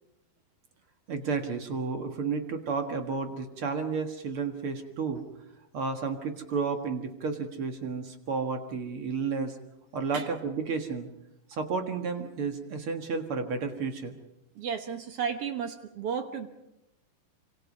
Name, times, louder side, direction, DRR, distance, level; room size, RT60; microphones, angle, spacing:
voice 1, 1.1-5.2 5.7-9.6 9.9-11.1 11.5-14.2, right 5 dB, 45° right, 5 dB, 2.0 m, -32 dB
voice 2, 14.6-16.5, right 7 dB, 65° right, 7 dB, 1.5 m, -33 dB
26.5 x 25.5 x 5.4 m, 0.89 s
omnidirectional pair, 4.1 m